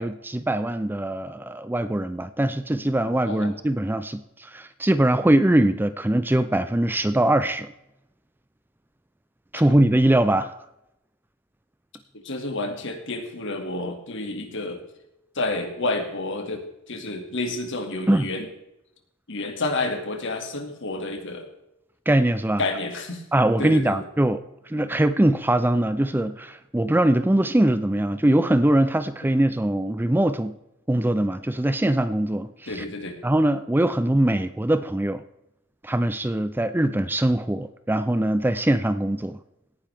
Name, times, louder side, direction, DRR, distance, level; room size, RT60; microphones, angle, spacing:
voice 1, 0.0-7.7 9.5-10.5 18.1-18.3 22.1-22.6 23.3-30.6 30.9-32.8 33.2-35.2 35.8-39.4, right 1 dB, 10° right, 12 dB, 0.5 m, -22 dB
voice 2, 12.1-14.8 15.4-18.5 19.3-21.5 22.6-23.2 23.6-24.0 32.7-33.2, left 2 dB, 60° left, 4 dB, 2.3 m, -30 dB
18.0 x 10.0 x 3.5 m, 0.86 s
head